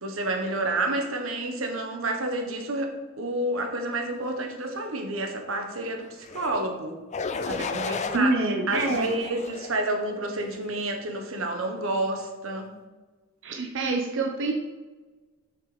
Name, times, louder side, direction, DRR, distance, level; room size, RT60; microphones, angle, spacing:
voice 1, 0.0-6.1 6.3-6.9 7.4-8.4 8.7-12.7, right 2 dB, 90° right, 4 dB, 1.3 m, -29 dB
sound 1, 6.2-6.6 7.1-8.2 8.7-9.8 10.4-10.7, left 4 dB, 35° left, 0.5 m, -33 dB
voice 2, 8.1-9.2 13.4-14.5, right 2 dB, 65° right, 1 dB, 0.9 m, -26 dB
6.7 x 6.4 x 5.1 m, 1.3 s
head